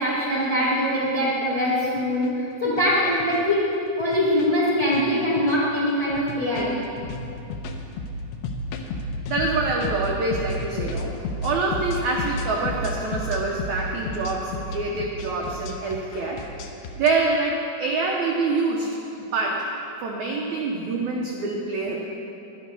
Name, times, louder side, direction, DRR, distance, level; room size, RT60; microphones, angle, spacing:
voice 1, 0.0-6.8, equal, 45° left, -7 dB, 1.2 m, -23 dB
sound 1, 1.0-1.1 1.8-2.3 2.6-2.8 3.2-3.4 4.0-4.5 4.8-5.0 5.4-5.7 6.1-17.1, left 2 dB, 85° left, 2.7 m, -32 dB
voice 2, 9.3-11.1 11.4-16.4 17.0-18.9 19.2-19.6 20.0-22.0, right 3 dB, 85° right, -1 dB, 1.6 m, -26 dB
12.0 x 9.5 x 5.4 m, 2.8 s
omnidirectional pair, 4.5 m